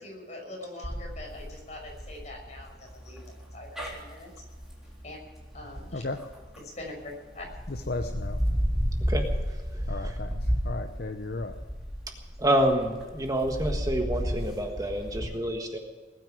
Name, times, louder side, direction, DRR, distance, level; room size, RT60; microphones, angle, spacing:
voice 1, 0.0-4.3 5.0-5.2 5.5-6.0 6.6-7.5, left 2 dB, 40° left, 0 dB, 5.9 m, -43 dB
sound 1, 0.8-6.8 7.3-15.3, equal, ahead, 3.8 m, -32 dB
voice 2, 7.7-8.4 9.9-11.5, left 2 dB, 55° left, 7 dB, 0.8 m, -35 dB
voice 3, 12.4-15.8, right 1 dB, 20° right, 3 dB, 1.5 m, -27 dB
20.0 x 9.2 x 7.6 m, 1.3 s
head